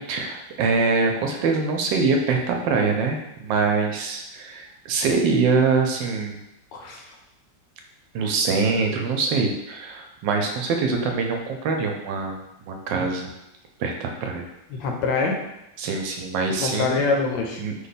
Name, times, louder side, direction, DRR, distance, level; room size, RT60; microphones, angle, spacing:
voice 1, 0.0-6.4 8.1-13.3 13.8-14.5 15.8-17.0 17.6-17.7, right 4 dB, 80° right, 3 dB, 1.2 m, -24 dB
voice 2, 6.7-7.0 14.7-15.4 16.6-17.6, left 4 dB, 80° left, 2 dB, 1.3 m, -24 dB
3.2 x 2.2 x 4.0 m, 0.88 s
omnidirectional pair, 2.0 m